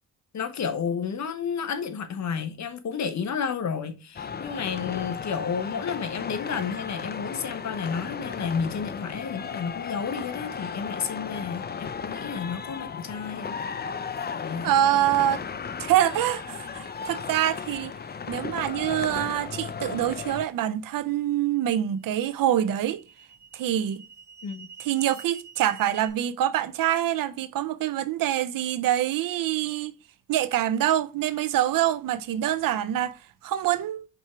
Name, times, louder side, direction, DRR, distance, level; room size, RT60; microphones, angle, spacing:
voice 1, 0.3-13.6 14.3-14.7 18.2-18.3 24.4-24.7, left 6 dB, 60° left, 1.0 m, -31 dB
sound 1, 4.2-20.5, left 6 dB, 30° left, 0.5 m, -35 dB
voice 2, 14.6-15.4 15.8-17.9 18.3-23.0 23.5-24.0 24.8-29.9 30.3-34.1, right 12 dB, 80° right, 0.6 m, -25 dB
sound 2, 21.1-21.2 22.0-26.1, right 5 dB, 45° right, 2.5 m, -47 dB
5.3 x 4.3 x 4.5 m
cardioid pair, 85°, 33 cm